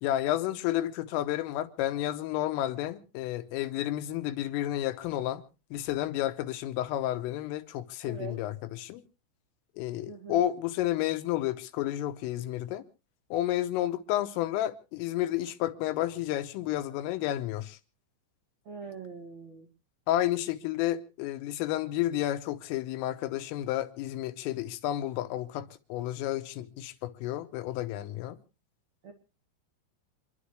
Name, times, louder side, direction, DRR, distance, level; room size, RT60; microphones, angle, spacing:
voice 1, 0.0-5.4 5.7-9.0 9.8-12.8 13.3-17.8 20.1-28.4, left 13 dB, 90° left, 3.7 m, -31 dB
voice 2, 8.0-8.4 10.1-10.4 18.6-19.7 29.0-29.1, right 5 dB, 55° right, 2.0 m, -42 dB
27.5 x 11.5 x 3.1 m
omnidirectional pair, 5.7 m